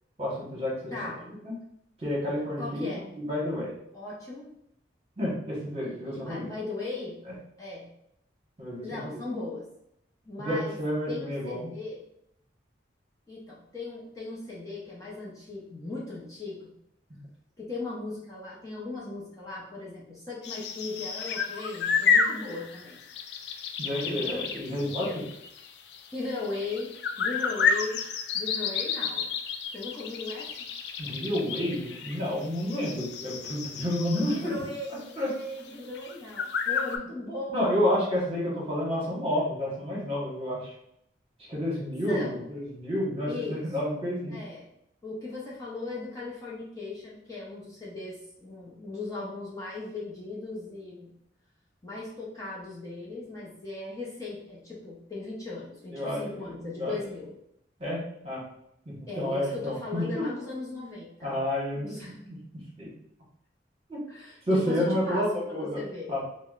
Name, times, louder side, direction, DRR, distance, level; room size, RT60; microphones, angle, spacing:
voice 1, 0.2-0.9 1.3-1.5 2.0-2.9 3.2-3.8 5.2-6.5 8.6-9.1 10.4-11.7 17.1-17.2 23.8-25.1 31.0-34.6 35.2-35.3 37.5-40.7 41.5-44.4 55.9-56.5 56.8-57.0 57.8-58.4 58.8-60.2 61.2-62.4 62.8-62.9 63.9-64.0 64.5-65.8 66.1-66.2, equal, 30° right, -5 dB, 1.1 m, -30 dB
voice 2, 0.9-1.2 2.6-3.0 3.9-4.5 5.8-7.2 7.6-7.9 8.8-9.7 10.2-10.8 11.1-12.0 13.3-16.7 17.6-23.0 24.0-24.5 25.1-25.2 26.1-26.9 27.2-28.0 28.3-29.3 29.7-30.7 31.1-31.3 34.3-37.8 42.1-42.4 43.3-43.9 44.3-44.7 45.0-51.1 51.8-57.3 59.1-61.4 61.7-62.2 64.1-66.1, left 3 dB, 20° left, -6 dB, 0.6 m, -38 dB
sound 1, 20.4-34.8 35.0-35.1 35.6-35.7 35.9-37.0, left 6 dB, 65° left, 0.3 m, -31 dB
4.7 x 2.1 x 2.4 m, 0.76 s
head